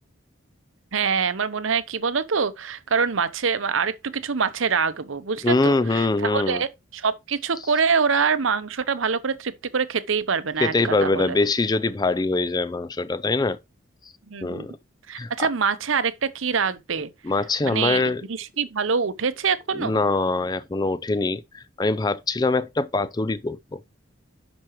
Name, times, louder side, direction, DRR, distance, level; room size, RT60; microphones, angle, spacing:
voice 1, 0.9-11.4 14.3-14.7 15.1-17.1 17.6-20.0, right 5 dB, 80° right, 0.8 m, -25 dB
voice 2, 5.4-6.6 10.6-13.6 14.4-14.7 15.2-15.5 17.2-18.2 19.8-23.8, left 3 dB, 20° left, 0.4 m, -23 dB
10.5 x 6.1 x 3.1 m
head